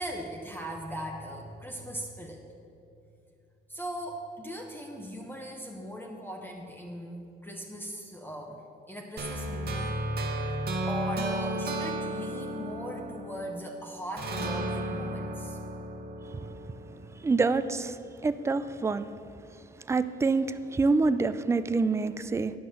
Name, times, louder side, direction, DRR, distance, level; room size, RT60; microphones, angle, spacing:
voice 1, 0.0-2.4 3.7-8.6 8.9-10.0 10.4-10.5 10.9-15.6, equal, 10° left, 0 dB, 0.9 m, -39 dB
sound 1, 9.2-13.7 14.2-17.2, right 1 dB, 55° right, 1.1 m, -33 dB
voice 2, 17.2-17.9 18.2-19.0 19.9-22.5, right 3 dB, 15° right, 12 dB, 0.3 m, -26 dB
9.4 x 5.8 x 6.5 m, 2.6 s
cardioid pair, 90°, 20 cm